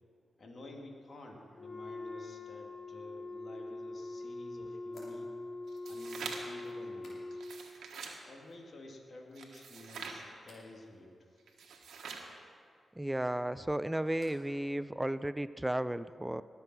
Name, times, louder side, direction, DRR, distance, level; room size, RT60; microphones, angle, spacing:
voice 1, 0.4-5.3 5.8-7.4 8.2-11.4, left 1 dB, 60° left, 0 dB, 2.3 m, -51 dB
Wind instrument woodwind instrument, 1.5-7.7, left 2 dB, 35° left, 0.9 m, -43 dB
sound 1, 4.9-7.7 8.0-8.6 8.9-9.5 10.4-10.7 13.2-14.6 14.9-15.5, left 1 dB, 75° left, 3.6 m, -62 dB
sound 2, 5.7-6.6 7.3-8.2 9.4-10.2 11.5-12.3, right 5 dB, 90° right, 1.3 m, -44 dB
voice 2, 13.0-16.4, right 1 dB, 10° right, 15 dB, 0.4 m, -34 dB
19.0 x 7.1 x 6.1 m, 2.2 s
cardioid pair, 50°, 0 cm